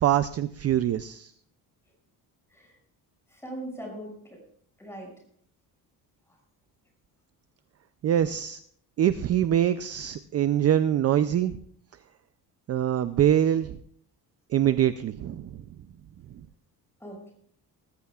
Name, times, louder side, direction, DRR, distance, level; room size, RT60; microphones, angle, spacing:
voice 1, 0.0-1.3 8.0-8.6 9.0-11.6 12.7-13.8 14.5-15.6, right 11 dB, 40° right, 12 dB, 0.4 m, -24 dB
voice 2, 3.3-4.4 4.8-5.1 17.0-17.3, right 1 dB, 5° left, 0 dB, 6.1 m, -40 dB
20.0 x 14.5 x 2.4 m, 0.62 s
cardioid pair, 145°, 38 cm